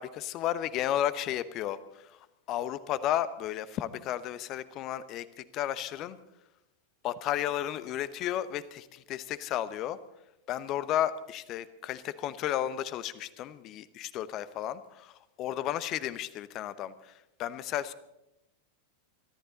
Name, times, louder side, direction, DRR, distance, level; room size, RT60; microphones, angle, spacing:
voice 1, 0.0-2.2 2.5-6.2 7.0-10.0 10.5-17.1 17.4-17.9, left 12 dB, 35° left, 15 dB, 0.9 m, -33 dB
23.5 x 13.5 x 4.0 m, 0.88 s
figure-of-eight pair, 90°, 0 cm